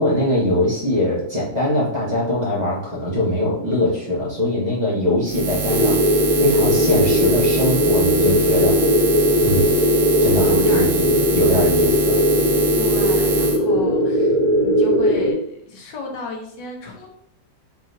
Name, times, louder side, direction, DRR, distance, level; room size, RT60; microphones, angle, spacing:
voice 1, 0.0-8.8 9.4-9.7 10.2-12.2, left 1 dB, 30° right, -7 dB, 0.8 m, -22 dB
Buzz, 5.2-13.6, right 4 dB, 70° right, 1.2 m, -25 dB
sound 1, 5.7-15.3, left 1 dB, 45° left, 1.2 m, -18 dB
voice 2, 10.4-10.8 12.8-17.1, left 3 dB, 75° left, 1 dB, 1.5 m, -33 dB
4.1 x 3.7 x 2.6 m, 0.69 s
omnidirectional pair, 2.0 m